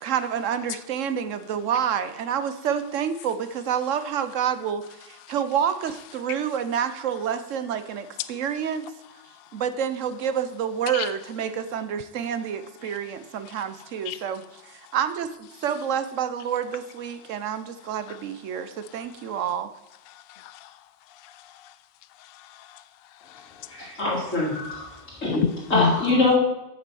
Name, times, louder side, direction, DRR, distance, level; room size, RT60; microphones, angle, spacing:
voice 1, 0.0-8.9 9.5-19.7, right 8 dB, 80° right, 1.1 m, -28 dB
voice 2, 20.1-20.8 21.2-21.7 22.2-22.8 23.2-23.9 25.4-26.0, left 7 dB, 60° left, 0.7 m, -31 dB
voice 3, 23.7-25.4 25.7-26.4, left 2 dB, 90° left, 3.7 m, -23 dB
8.3 x 6.2 x 6.9 m
omnidirectional pair, 1.3 m